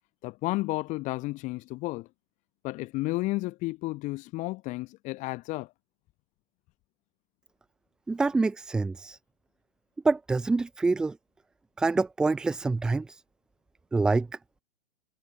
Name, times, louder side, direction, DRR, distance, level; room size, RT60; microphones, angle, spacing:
voice 1, 0.2-2.1 2.6-5.7, left 20 dB, 25° left, 0.9 m, -32 dB
voice 2, 8.1-9.2 10.0-11.1 11.8-13.2 13.9-14.3, right 3 dB, ahead, 0.4 m, -26 dB
figure-of-eight pair, 110°, 33 cm